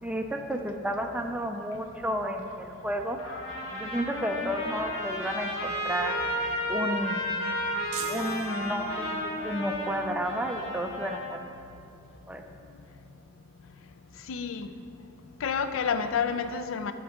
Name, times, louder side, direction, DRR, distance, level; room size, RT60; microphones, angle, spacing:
voice 1, 0.0-3.2 3.7-6.2 6.7-7.3 8.1-11.4 12.3-12.4, equal, 5° right, 4 dB, 0.3 m, -32 dB
Trumpet, 3.2-11.3, left 1 dB, 80° left, 1.8 m, -33 dB
sound 1, 7.9-9.4, right 7 dB, 85° right, 0.5 m, -41 dB
voice 2, 14.3-14.7 15.4-16.9, left 6 dB, 65° left, 10 dB, 0.4 m, -29 dB
13.0 x 4.7 x 3.6 m, 2.6 s
head